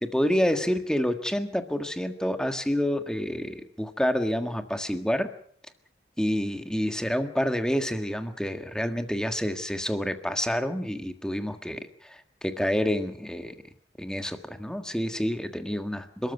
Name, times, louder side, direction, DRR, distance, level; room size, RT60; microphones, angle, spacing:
voice 1, 0.0-5.3 6.2-13.5 14.0-16.3, equal, 5° left, 7 dB, 1.6 m, -28 dB
28.5 x 13.5 x 8.3 m, 0.63 s
head